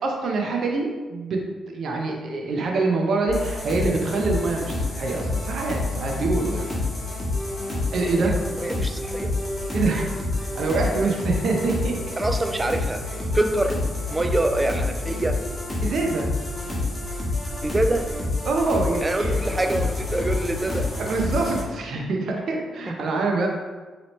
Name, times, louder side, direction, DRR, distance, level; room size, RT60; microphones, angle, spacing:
voice 1, 0.0-6.6 7.9-8.4 9.7-10.0 10.4-12.1 15.8-16.3 18.4-19.4 21.1-23.5, right 3 dB, 65° right, 1 dB, 0.6 m, -25 dB
sound 1, 3.3-21.6, left 2 dB, 25° left, 1.3 m, -28 dB
voice 2, 8.3-9.3 12.2-13.0 13.3-13.8 14.1-15.4 17.6-18.1 19.0-20.9 23.0-23.1, right 1 dB, 20° right, 7 dB, 0.4 m, -25 dB
4.0 x 3.0 x 3.1 m, 1.3 s
supercardioid pair, 55°, 0 cm